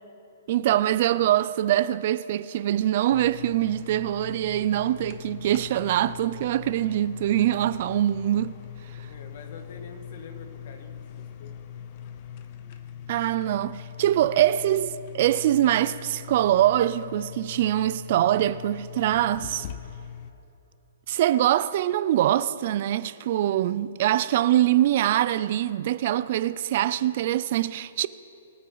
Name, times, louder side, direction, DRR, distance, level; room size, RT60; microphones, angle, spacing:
voice 1, 0.5-8.5 13.1-19.7 21.1-28.1, right 12 dB, 45° right, 0.3 m, -23 dB
sound 1, 3.1-20.3, left 9 dB, 35° left, 0.7 m, -41 dB
voice 2, 9.0-11.5, left 4 dB, 50° left, 1.7 m, -46 dB
22.5 x 8.5 x 4.0 m
hypercardioid pair, 160°, 0 cm